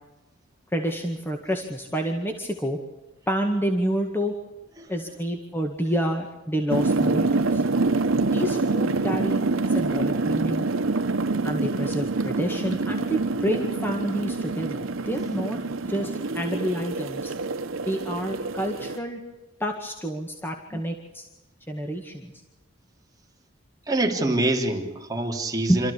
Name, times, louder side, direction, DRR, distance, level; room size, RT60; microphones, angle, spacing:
voice 1, 0.7-2.8 3.3-4.3 4.9-7.6 8.3-9.4 9.7-10.7 11.4-17.3 17.8-19.2 19.6-21.3 21.7-22.3 25.7-25.9, equal, 10° left, 3 dB, 1.9 m, -28 dB
sound 1, 6.7-19.0, right 3 dB, 85° right, 1.0 m, -26 dB
voice 2, 23.9-25.9, right 2 dB, 20° right, 1 dB, 3.3 m, -25 dB
27.0 x 14.5 x 8.5 m, 1.1 s
head